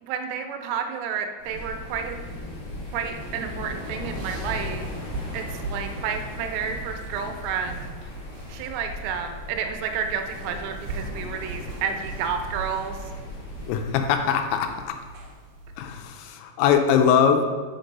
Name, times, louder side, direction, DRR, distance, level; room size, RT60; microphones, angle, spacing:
voice 1, 0.0-2.2 2.9-4.9 5.3-7.8 8.5-13.0, right 6 dB, 85° right, 5 dB, 3.1 m, -30 dB
sound 1, 1.4-13.8, left 1 dB, 55° left, 1.4 m, -38 dB
sound 2, 1.4-16.1, right 3 dB, 70° right, 2.3 m, -41 dB
voice 2, 13.7-15.0 15.8-17.5, left 7 dB, 85° left, 6 dB, 3.1 m, -22 dB
6.5 x 5.2 x 5.2 m, 1.5 s
omnidirectional pair, 5.9 m